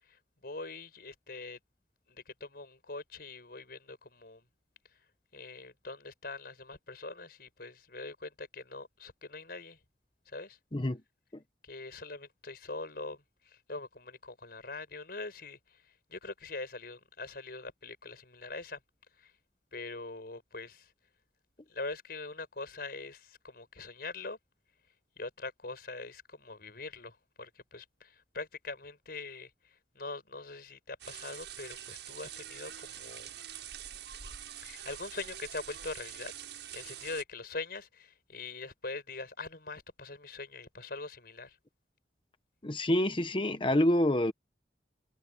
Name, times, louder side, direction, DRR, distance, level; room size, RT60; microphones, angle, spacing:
voice 1, 0.0-1.6 2.1-4.4 5.3-9.8 10.3-10.6 11.6-18.8 19.2-19.3 19.7-20.9 21.7-24.4 25.2-33.3 34.6-41.6, left 3 dB, 60° left, 5.8 m, -43 dB
sound 1, 31.0-37.2, right 10 dB, 90° right, 7.5 m, -45 dB
voice 2, 42.6-44.3, left 1 dB, 30° left, 1.1 m, -27 dB
head